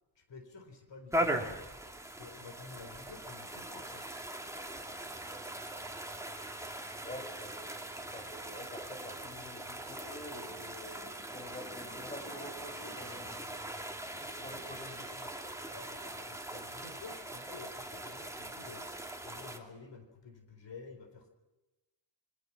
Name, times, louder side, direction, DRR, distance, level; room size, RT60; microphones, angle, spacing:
voice 1, 0.2-1.6 2.1-4.1 14.4-14.6 15.7-18.9 19.2-21.3, left 4 dB, 70° left, 7 dB, 4.2 m, -50 dB
sound 1, 1.1-19.6, right 1 dB, 5° right, 2.6 m, -40 dB
voice 2, 7.0-13.6 14.1-15.6, left 1 dB, 15° left, 5 dB, 5.3 m, -48 dB
27.5 x 24.0 x 6.1 m, 1.1 s
wide cardioid pair, 160°, 45 cm